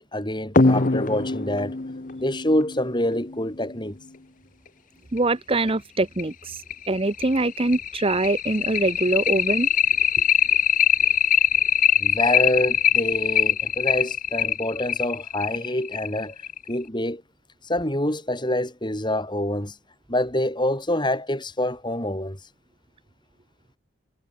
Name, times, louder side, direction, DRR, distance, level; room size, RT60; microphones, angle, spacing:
voice 1, 0.0-1.8 2.2-3.9 12.0-16.4 16.7-17.2 17.6-19.7 20.1-22.4, left 1 dB, 25° left, 7.8 m, -26 dB
sound 1, 0.6-3.7 5.2-5.3 5.7-5.8 6.2-6.3 6.7-16.8, left 7 dB, 40° left, 0.9 m, -22 dB
voice 2, 5.1-9.7, right 2 dB, 30° right, 0.8 m, -24 dB
head